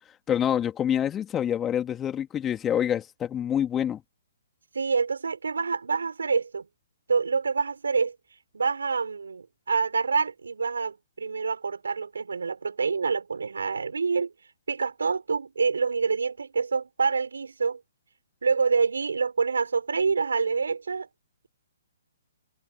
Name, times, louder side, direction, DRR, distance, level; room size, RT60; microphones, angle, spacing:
voice 1, 0.3-4.0, left 9 dB, 15° left, 2.8 m, -26 dB
voice 2, 4.7-6.7 7.1-8.2 8.5-14.3 14.7-17.8 18.4-21.1, right 5 dB, 80° right, 5.4 m, -27 dB
hypercardioid pair, 135°, 0 cm